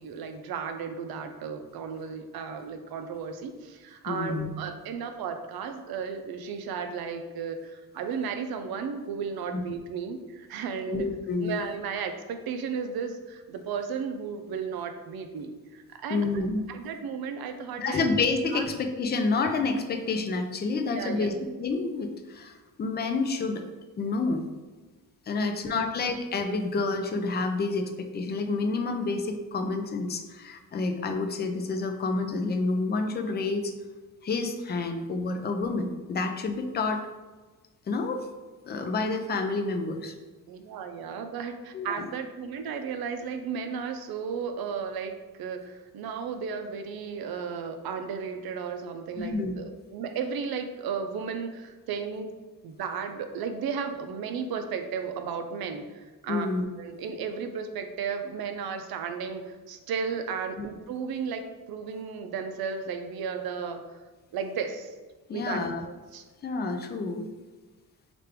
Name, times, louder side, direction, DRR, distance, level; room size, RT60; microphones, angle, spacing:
voice 1, 0.0-11.1 11.4-18.1 18.5-18.7 20.9-21.4 25.3-25.8 40.5-52.3 52.6-56.5 56.8-63.8 64.3-64.9 65.3-65.6 66.1-66.2, right 6 dB, 70° right, 6 dB, 0.6 m, -34 dB
voice 2, 4.1-4.5 9.5-9.6 10.9-11.6 16.1-16.7 17.8-21.3 21.6-23.6 24.0-24.4 25.3-33.7 34.2-37.0 37.9-38.3 38.6-40.1 41.7-42.1 49.2-49.5 56.3-56.6 60.6-60.7 65.3-65.8 66.4-67.3, left 3 dB, 30° left, 6 dB, 0.4 m, -29 dB
3.2 x 2.5 x 4.4 m, 1.3 s
cardioid pair, 130°, 38 cm